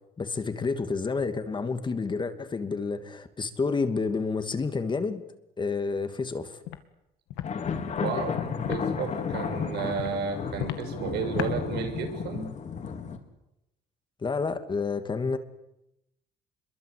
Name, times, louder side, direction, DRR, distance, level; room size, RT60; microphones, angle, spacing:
voice 1, 0.2-5.2 5.6-6.6 14.2-15.4, left 4 dB, 25° left, 9 dB, 2.6 m, -29 dB
Walk footsteps, 6.7-6.8 7.3-7.5 7.9-8.1 8.6-8.8 9.3-9.5 10.0-10.1 10.6-10.8 11.4-11.5, left 13 dB, 85° left, 2.3 m, -33 dB
sound 1, 7.4-13.2, left 6 dB, 45° left, 4.1 m, -32 dB
voice 2, 8.0-8.4 8.7-12.5, right 6 dB, 80° right, 5 dB, 7.2 m, -32 dB
27.0 x 23.0 x 8.6 m, 0.85 s
cardioid pair, 110°, 17 cm